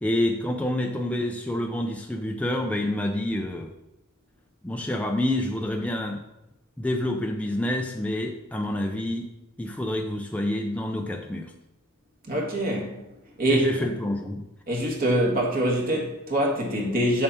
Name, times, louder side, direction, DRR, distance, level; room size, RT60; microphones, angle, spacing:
voice 1, 0.0-3.7 4.6-6.2 6.8-9.3 9.6-11.5 13.5-14.4, left 1 dB, 5° left, 1 dB, 0.5 m, -28 dB
voice 2, 12.3-13.0 13.4-13.7 14.7-17.2, right 1 dB, 45° right, -1 dB, 1.8 m, -24 dB
7.1 x 6.7 x 4.2 m, 0.93 s
head